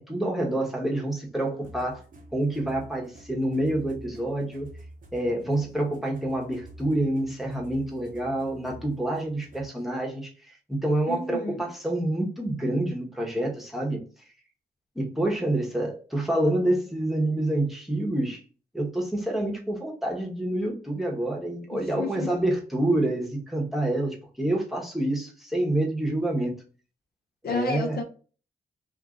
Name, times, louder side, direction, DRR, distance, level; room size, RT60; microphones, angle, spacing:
voice 1, 0.0-2.0 2.3-4.7 5.1-10.3 10.7-14.0 14.9-18.4 18.7-26.5 27.4-28.0, right 1 dB, ahead, -2 dB, 1.1 m, -27 dB
sound 1, 1.6-9.8, right 1 dB, 55° right, 0.8 m, -48 dB
voice 2, 11.1-11.7 21.7-22.3 27.4-28.0, left 4 dB, 70° left, 6 dB, 0.6 m, -32 dB
2.6 x 2.5 x 3.6 m, 0.38 s
cardioid pair, 70°, 17 cm